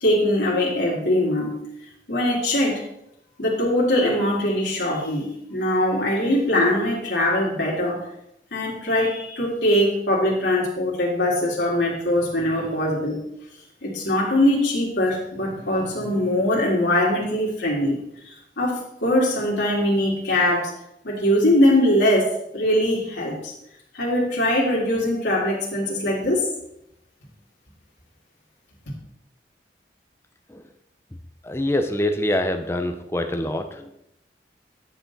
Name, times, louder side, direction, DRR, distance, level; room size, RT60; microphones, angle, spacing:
voice 1, 0.0-1.5 2.1-2.8 3.4-8.0 8.5-13.2 13.8-18.0 18.6-20.7 21.0-23.5 23.9-26.4, left 1 dB, 85° left, -4 dB, 2.3 m, -22 dB
voice 2, 31.5-33.6, left 1 dB, 15° left, 6 dB, 0.7 m, -24 dB
9.6 x 6.3 x 4.0 m, 0.81 s
head